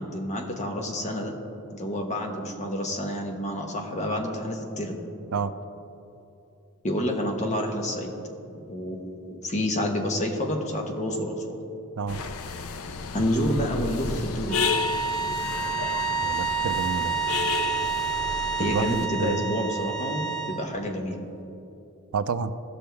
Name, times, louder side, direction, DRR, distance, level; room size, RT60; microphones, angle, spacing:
voice 1, 0.0-1.3 1.7-5.0 6.8-8.1 8.7-11.6 13.1-14.6 18.6-21.2, left 1 dB, 35° left, 2 dB, 1.1 m, -29 dB
sound 1, 12.1-19.1, left 5 dB, 75° left, 0.5 m, -32 dB
sound 2, 14.5-20.6, right 5 dB, 15° left, 1.7 m, -29 dB
voice 2, 16.2-17.1 18.6-19.5 22.1-22.5, right 5 dB, 85° right, 12 dB, 0.4 m, -29 dB
16.5 x 6.1 x 3.4 m, 2.8 s
head